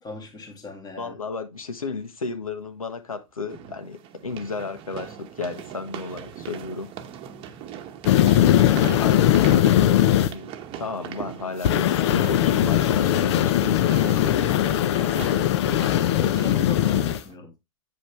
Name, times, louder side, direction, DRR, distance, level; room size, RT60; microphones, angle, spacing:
voice 1, 0.0-1.2 15.8-17.5, left 3 dB, 25° left, 2.3 m, -38 dB
voice 2, 1.0-6.9 8.2-15.3, left 4 dB, 90° left, 1.3 m, -34 dB
sound 1, 1.5-1.6 3.5-17.4, right 9 dB, 30° right, 1.0 m, -40 dB
sound 2, 8.0-10.3 11.6-17.2, left 12 dB, 55° left, 0.7 m, -20 dB
8.5 x 5.1 x 3.4 m
hypercardioid pair, 115°, 17 cm